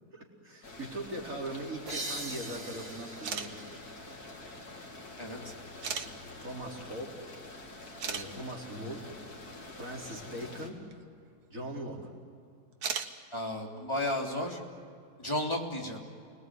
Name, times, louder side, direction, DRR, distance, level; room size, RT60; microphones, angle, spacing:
voice 1, 0.1-3.8 6.4-7.1 8.0-9.1 9.7-10.8 11.5-12.1, right 1 dB, 55° right, -2 dB, 4.6 m, -40 dB
sound 1, 0.6-10.7, left 2 dB, 70° left, 3.3 m, -47 dB
sound 2, 1.9-5.3, right 1 dB, 90° right, 4.7 m, -43 dB
sound 3, 3.1-3.5 4.5-4.6 5.8-6.1 7.5-7.6 8.0-8.2 10.9-11.0 12.7-13.1, right 6 dB, 70° right, 1.8 m, -34 dB
voice 2, 13.3-14.6 15.2-16.0, left 1 dB, 15° left, 0 dB, 3.3 m, -33 dB
30.0 x 19.5 x 9.7 m, 2.4 s
omnidirectional pair, 1.7 m